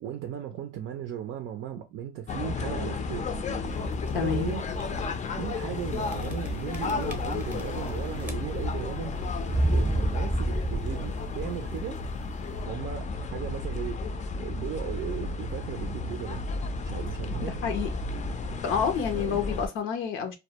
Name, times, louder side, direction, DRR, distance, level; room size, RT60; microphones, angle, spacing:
voice 1, 0.0-3.3 3.9-4.6 5.4-9.2 9.7-12.0 12.7-14.0 14.4-16.4 16.8-17.6 19.1-19.4, right 10 dB, 80° right, 0.4 m, -36 dB
sound 1, 2.3-19.7, left 3 dB, 40° left, 0.4 m, -33 dB
sound 2, 3.7-4.1 4.7-4.8 5.1-5.2 6.1-6.5 6.7-7.9 8.2-8.7 9.4-11.4, right 1 dB, 10° right, 0.6 m, -28 dB
voice 2, 4.1-4.5 17.4-17.9 18.6-20.4, left 7 dB, 90° left, 0.6 m, -29 dB
2.1 x 2.1 x 2.8 m
cardioid pair, 90°, 20 cm